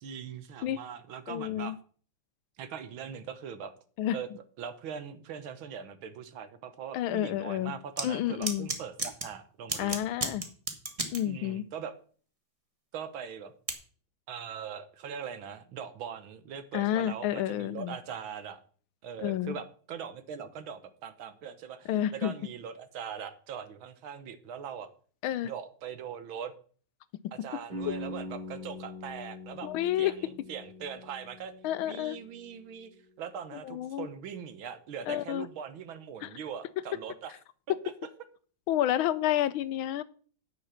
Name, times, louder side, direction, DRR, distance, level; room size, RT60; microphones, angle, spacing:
voice 1, 0.0-1.8 2.6-3.7 4.1-4.3 4.6-10.1 11.2-11.9 12.9-13.5 14.3-18.6 19.0-24.9 25.4-26.5 27.3-29.7 30.0-31.5 31.8-32.9 33.2-37.3, right 7 dB, 80° right, 11 dB, 1.9 m, -41 dB
voice 2, 1.3-1.8 4.0-4.2 6.9-7.7 8.0-8.7 9.8-10.4 11.1-11.6 16.7-18.0 19.2-19.6 21.9-22.3 25.2-25.5 27.9-28.0 29.6-30.1 31.6-32.2 33.6-34.1 35.1-35.5 36.2-36.3 38.7-40.0, left 12 dB, 90° left, 16 dB, 1.5 m, -30 dB
sound 1, 8.0-8.1 8.4-9.3 9.7-11.2 13.7-13.8, right 2 dB, 20° right, 1.2 m, -32 dB
sound 2, 27.7-33.5, left 1 dB, 45° right, 3.8 m, -43 dB
9.6 x 6.4 x 5.8 m, 0.43 s
omnidirectional pair, 2.2 m